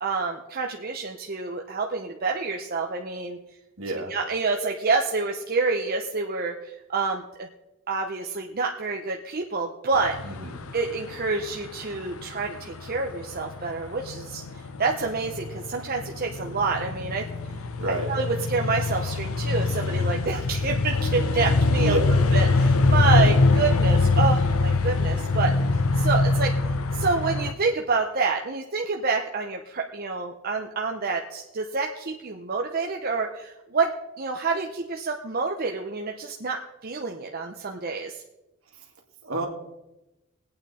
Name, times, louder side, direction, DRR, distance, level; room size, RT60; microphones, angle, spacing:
voice 1, 0.0-3.4 4.1-7.5 7.9-10.2 10.7-14.4 14.8-17.3 18.1-22.0 22.3-25.5 25.9-26.5 26.9-38.2, right 4 dB, 45° right, 2 dB, 0.8 m, -28 dB
voice 2, 3.8-4.1 10.2-10.6 17.8-18.1 21.8-22.2 39.2-39.5, right 1 dB, 70° right, 1 dB, 2.4 m, -29 dB
sound 1, 9.9-27.5, left 3 dB, 80° left, 0.8 m, -23 dB
20.0 x 8.8 x 4.3 m, 0.97 s
head